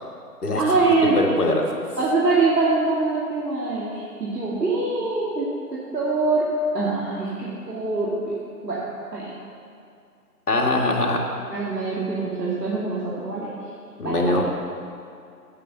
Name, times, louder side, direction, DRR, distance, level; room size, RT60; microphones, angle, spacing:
voice 1, 0.6-1.2 2.0-5.5 5.7-6.5 6.7-8.3 8.6-8.8 9.1-9.3 11.5-13.6 14.0-14.4, right 3 dB, 80° right, -7 dB, 2.5 m, -24 dB
voice 2, 1.2-1.8 10.5-11.2 14.0-14.4, left 2 dB, 70° left, 0 dB, 1.9 m, -22 dB
9.0 x 8.8 x 6.8 m, 2.3 s
figure-of-eight pair, 180°, 48 cm